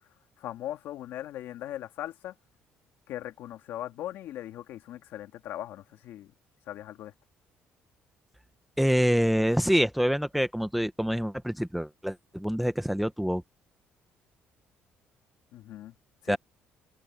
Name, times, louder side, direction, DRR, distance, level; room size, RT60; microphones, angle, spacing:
voice 1, 0.4-2.4 3.1-6.3 6.7-7.1 15.5-15.9 16.2-16.4, left 13 dB, 75° left, 2.2 m, -39 dB
voice 2, 8.8-13.4 16.3-16.4, equal, ahead, 0.9 m, -26 dB
cardioid pair, 145°, 4 cm